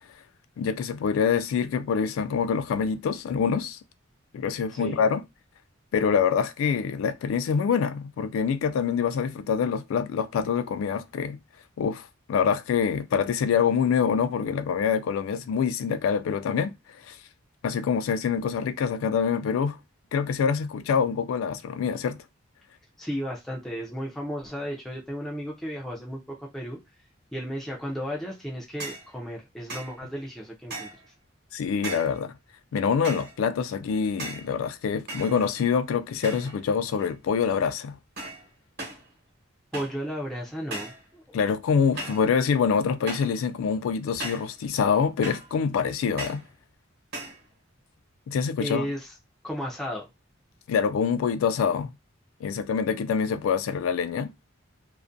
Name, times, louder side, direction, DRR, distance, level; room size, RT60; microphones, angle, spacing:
voice 1, 0.6-3.8 4.3-5.2 5.9-11.4 11.8-16.7 17.1-17.2 17.6-19.8 20.1-22.2 31.5-32.3 32.7-38.0 41.3-46.4 48.3-48.9 50.7-51.9 52.4-54.3, left 6 dB, 80° left, 0.3 m, -25 dB
voice 2, 23.0-26.8 27.3-30.9 39.7-41.4 48.6-49.1 49.4-50.1, equal, ahead, 0.4 m, -34 dB
sound 1, 28.8-29.1 29.7-30.0 30.7-31.1 31.8-32.2 33.0-33.4 34.2-34.5 35.1-35.7 36.2-36.6 36.9-37.4 38.2-38.5 38.8-39.1 39.7-40.0 40.7-41.0 42.0-42.3 43.1-43.4 44.2-44.5 45.2-45.5 46.2-46.5 47.1-47.4, right 2 dB, 50° right, 1.0 m, -37 dB
2.3 x 2.1 x 2.5 m
head